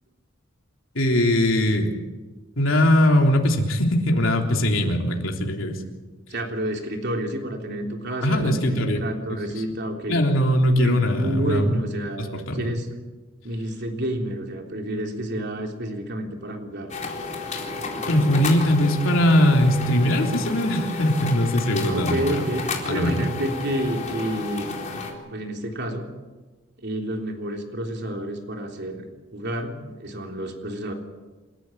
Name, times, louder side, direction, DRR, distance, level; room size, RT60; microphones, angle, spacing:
voice 1, 1.0-1.9 2.6-5.8 8.2-9.0 10.1-11.7 12.2-12.6 18.1-22.2 22.9-23.1, left 1 dB, 75° left, 2 dB, 3.5 m, -20 dB
voice 2, 6.3-10.2 10.8-12.9 13.4-17.0 21.8-26.1 26.8-30.9, right 1 dB, 55° right, 3 dB, 3.5 m, -30 dB
sound 1, 16.9-25.1, left 3 dB, 35° left, 4.1 m, -32 dB
28.5 x 14.0 x 8.8 m, 1.2 s
head